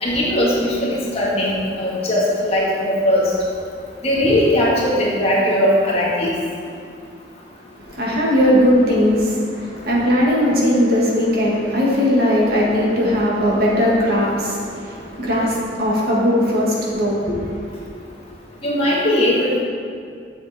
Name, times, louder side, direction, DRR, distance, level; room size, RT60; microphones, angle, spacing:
voice 1, 0.0-3.3 4.0-6.3 18.6-19.6, left 1 dB, 35° left, -5 dB, 1.6 m, -19 dB
voice 2, 7.9-17.8, equal, 55° right, -4 dB, 1.8 m, -18 dB
7.6 x 7.6 x 4.2 m, 2.2 s
head